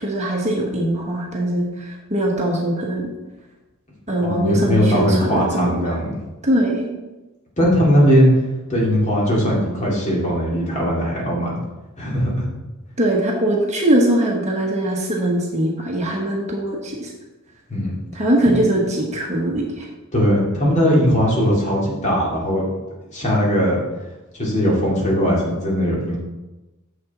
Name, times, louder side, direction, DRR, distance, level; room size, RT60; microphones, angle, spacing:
voice 1, 0.0-3.1 4.1-5.9 6.4-6.9 13.0-17.1 18.1-19.9, right 1 dB, 30° right, -1 dB, 1.1 m, -21 dB
voice 2, 4.2-6.1 7.6-8.3 8.7-11.6 12.0-12.4 17.7-17.9 20.1-22.6 23.1-23.8 24.3-26.2, equal, 30° left, -4 dB, 2.2 m, -19 dB
6.9 x 6.4 x 4.2 m, 1.1 s
head